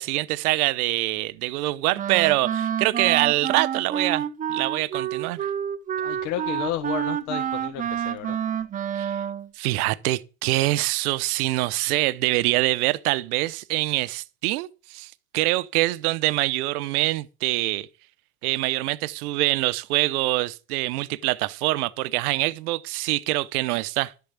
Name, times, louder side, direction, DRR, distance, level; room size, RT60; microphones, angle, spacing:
voice 1, 0.0-5.5 8.9-9.1 9.6-17.9 18.4-24.1, right 19 dB, 70° right, 0.9 m, -25 dB
Wind instrument woodwind instrument, 2.0-9.5, right 9 dB, 20° right, 0.6 m, -28 dB
voice 2, 6.0-8.4, left 11 dB, 55° left, 1.8 m, -32 dB
12.0 x 7.0 x 8.0 m
supercardioid pair, 125°, 46 cm